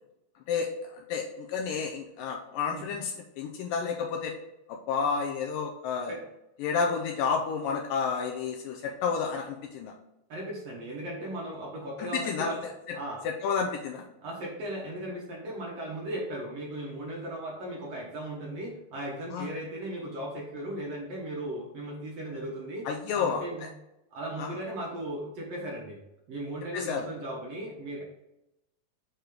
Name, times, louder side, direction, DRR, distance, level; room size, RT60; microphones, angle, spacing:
voice 1, 0.5-4.3 4.7-6.1 6.6-9.9 12.0-12.5 12.9-13.0 13.2-14.0 19.3-19.5 22.9-23.4 24.4-24.6 26.7-27.1, left 6 dB, 80° left, 1 dB, 2.2 m, -30 dB
voice 2, 10.3-12.6 12.9-13.2 14.2-22.8 23.1-23.7 24.1-26.0 26.3-28.0, right 1 dB, 65° right, -3 dB, 1.7 m, -37 dB
6.7 x 3.0 x 5.1 m, 0.88 s
omnidirectional pair, 4.1 m